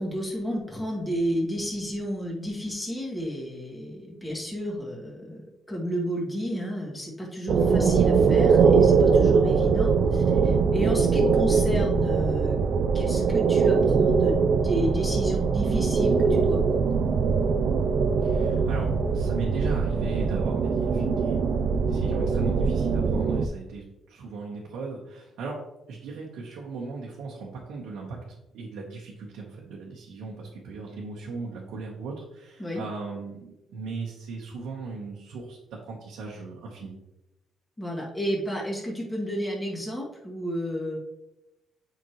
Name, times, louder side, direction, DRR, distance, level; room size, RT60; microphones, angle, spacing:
voice 1, 0.0-5.4 5.7-12.6 12.9-14.3 14.6-17.0 32.6-32.8 37.8-41.0, equal, 10° left, -3 dB, 1.9 m, -31 dB
sound 1, 7.5-23.5, right 5 dB, 60° right, 0.5 m, -22 dB
voice 2, 18.2-21.5 21.8-25.6 25.9-28.2 28.5-36.9, right 4 dB, 90° right, -3 dB, 1.1 m, -38 dB
7.6 x 5.2 x 3.1 m, 0.92 s
cardioid pair, 90°, 0 cm